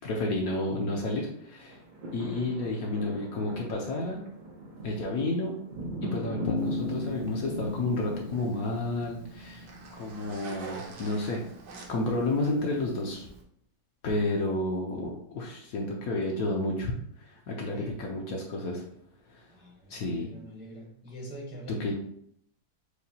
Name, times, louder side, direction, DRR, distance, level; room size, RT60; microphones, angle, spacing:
voice 1, 0.0-1.8 2.1-4.2 4.8-5.5 6.1-11.4 11.9-13.3 14.0-18.8 19.3-19.5 19.9-20.3 21.7-21.9, left 2 dB, 65° left, -1 dB, 1.0 m, -31 dB
sound 1, 1.6-9.9 10.4-10.5, right 1 dB, 90° right, 0.4 m, -40 dB
Bass guitar, 6.5-10.2, left 3 dB, 80° left, 1.2 m, -37 dB
Zipper (clothing), 6.6-13.4, right 3 dB, 70° right, 1.2 m, -48 dB
voice 2, 19.5-21.9, right 1 dB, 10° right, -4 dB, 0.6 m, -44 dB
6.5 x 2.2 x 2.8 m, 0.69 s
omnidirectional pair, 1.9 m